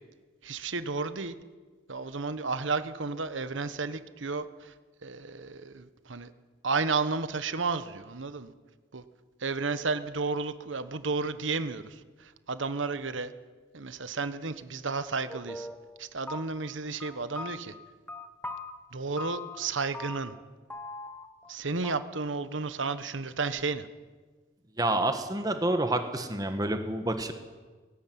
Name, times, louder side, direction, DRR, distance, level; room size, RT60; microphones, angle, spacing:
voice 1, 0.4-1.3 1.9-4.7 5.0-6.3 6.6-8.5 8.9-9.0 9.4-13.3 13.7-15.7 16.0-17.7 18.9-20.3 21.5-23.9, right 4 dB, 75° right, 12 dB, 1.2 m, -32 dB
sound 1, 15.3-16.0 16.3-16.7 17.0-18.7 19.2-19.7 19.9-20.4 20.7-21.5 21.8-21.9, left 2 dB, 10° left, 1.3 m, -40 dB
voice 2, 24.8-27.3, right 1 dB, 20° right, 7 dB, 1.3 m, -28 dB
18.0 x 17.0 x 9.4 m, 1.4 s
head